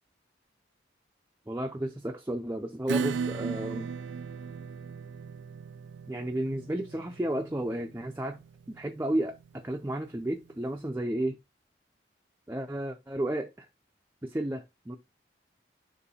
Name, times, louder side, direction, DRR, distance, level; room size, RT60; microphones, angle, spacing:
voice 1, 1.5-3.9 6.1-8.4 8.7-11.4 12.5-13.7 14.2-15.0, right 1 dB, 15° right, 0.4 m, -32 dB
Acoustic guitar / Strum, 2.9-10.1, right 5 dB, 85° right, 0.3 m, -37 dB
6.8 x 2.6 x 5.5 m
head